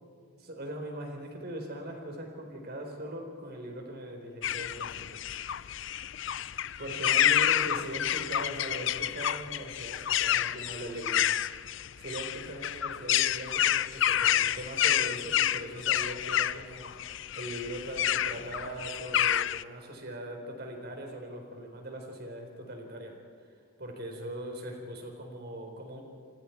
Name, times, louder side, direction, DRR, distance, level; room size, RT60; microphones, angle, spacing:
voice 1, 0.4-5.2 6.8-11.3 12.0-23.2 23.8-26.0, right 1 dB, 55° right, 2 dB, 4.3 m, -40 dB
sound 1, 4.4-19.6, left 11 dB, 65° left, 0.5 m, -29 dB
29.0 x 25.5 x 4.6 m, 2.2 s
head